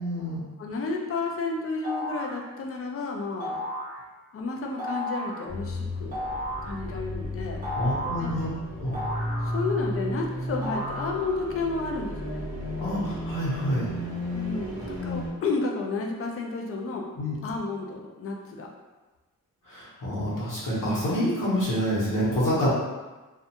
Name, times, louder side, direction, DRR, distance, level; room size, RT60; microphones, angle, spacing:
voice 1, 0.0-0.4 7.7-8.5 8.8-9.0 12.8-13.9 17.2-17.4 19.6-22.7, equal, 70° left, -7 dB, 1.0 m, -27 dB
voice 2, 0.6-3.6 4.3-6.2 6.6-7.6 8.2-8.3 9.4-12.5 14.3-17.0 17.4-18.7 20.8-21.0, left 3 dB, 45° left, 1 dB, 0.4 m, -31 dB
sound 1, 1.8-2.4 3.4-3.9 4.8-5.4 6.1-6.7 7.6-8.3 8.9-9.9 10.6-11.4, equal, 25° right, 0.8 m, -33 dB
sound 2, 5.5-15.3, left 1 dB, ahead, 0.8 m, -33 dB
2.4 x 2.2 x 2.8 m, 1.2 s
wide cardioid pair, 135°, 33 cm